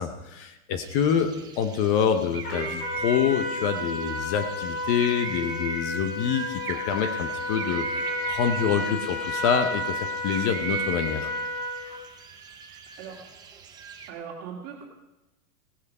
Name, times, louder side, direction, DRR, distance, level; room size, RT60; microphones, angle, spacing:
voice 1, 0.0-11.3, left 7 dB, 30° left, 9 dB, 0.7 m, -26 dB
sound 1, 0.8-14.1, right 6 dB, 10° right, 0.5 m, -39 dB
Trumpet, 2.4-12.0, left 1 dB, 85° left, 5.5 m, -32 dB
voice 2, 14.1-14.8, right 7 dB, 35° right, -1 dB, 2.2 m, -39 dB
17.0 x 8.2 x 5.4 m, 0.99 s
supercardioid pair, 155°, 43 cm